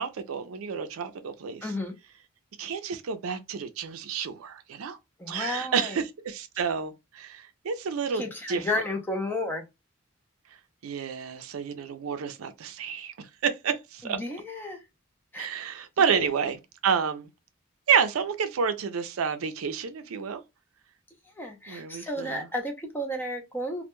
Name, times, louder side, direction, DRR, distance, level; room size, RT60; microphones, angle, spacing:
voice 1, 0.0-1.7 2.6-5.0 5.3-8.7 10.8-14.2 15.4-16.6 16.8-17.3 17.9-20.4 21.7-22.5, right 6 dB, 85° right, 0.4 m, -29 dB
voice 2, 1.6-1.9 5.2-6.0 8.1-9.6 14.0-14.8 15.3-15.5 16.2-16.3 21.4-23.8, left 1 dB, 10° left, 0.5 m, -32 dB
2.2 x 2.1 x 2.9 m
head